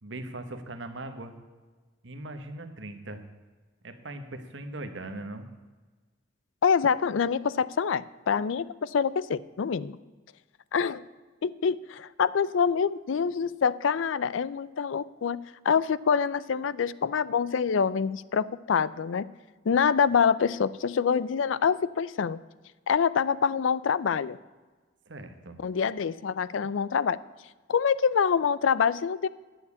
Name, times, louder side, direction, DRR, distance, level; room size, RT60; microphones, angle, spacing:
voice 1, 0.0-1.3 2.0-3.2 3.8-5.4 25.1-25.6, right 2 dB, 65° right, 7 dB, 1.2 m, -39 dB
voice 2, 6.6-10.0 10.7-11.0 11.4-15.4 15.6-19.3 19.7-22.4 22.9-24.4 25.6-27.2 27.7-29.3, left 6 dB, 75° left, 18 dB, 0.4 m, -26 dB
11.0 x 7.3 x 8.2 m, 1.3 s
head